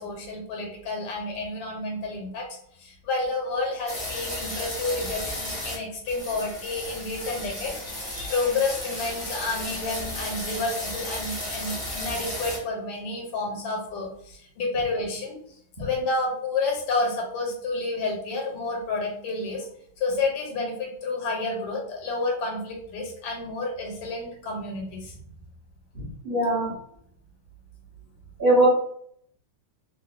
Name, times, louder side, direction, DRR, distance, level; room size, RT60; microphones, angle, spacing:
voice 1, 0.0-2.5 2.8-15.4 15.8-19.7 20.0-25.2, left 3 dB, 85° left, 0 dB, 1.8 m, -30 dB
sound 1, 3.9-5.8 6.0-12.6, left 1 dB, 60° left, 0.3 m, -34 dB
voice 2, 25.9-26.7 28.4-28.7, right 1 dB, 70° right, -8 dB, 0.5 m, -22 dB
3.8 x 2.1 x 2.5 m, 0.66 s
omnidirectional pair, 2.3 m